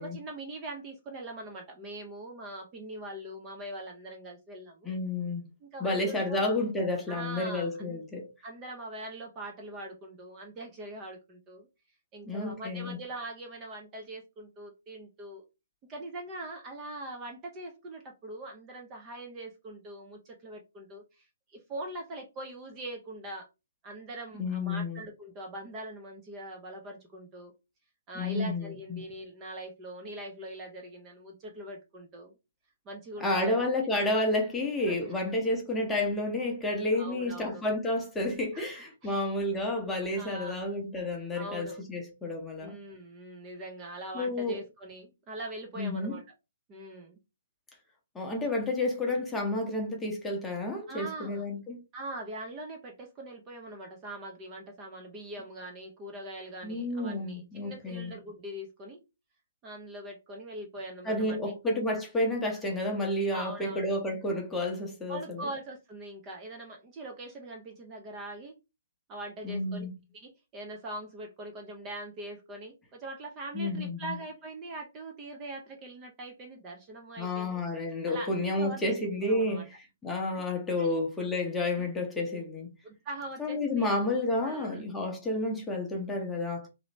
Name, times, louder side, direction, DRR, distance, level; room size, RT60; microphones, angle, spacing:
voice 1, 0.0-4.9 5.6-6.5 7.1-8.0 8.4-11.7 12.1-15.4 15.9-23.5 23.8-27.5 28.1-32.3 32.9-33.7 34.9-35.2 36.9-37.6 38.5-39.3 40.1-40.8 41.3-41.8 42.6-46.2 46.7-47.2 50.9-51.5 51.9-59.0 59.6-61.4 63.3-63.9 65.1-68.6 69.1-69.9 70.1-77.6 78.1-79.6 80.3-80.4 80.8-81.0 81.7-81.9 82.8-83.9 84.4-84.8, right 1 dB, 20° right, 0.6 m, -42 dB
voice 2, 4.8-5.5 5.8-8.3 12.3-13.0 24.4-25.0 28.1-29.0 33.2-42.8 44.1-44.6 45.8-46.2 48.1-51.8 56.6-58.1 61.1-65.4 69.4-69.9 73.5-74.2 77.2-79.7 80.0-82.7 83.4-86.7, left 2 dB, 5° left, 0.8 m, -30 dB
2.9 x 2.6 x 3.0 m
figure-of-eight pair, 130°, 0 cm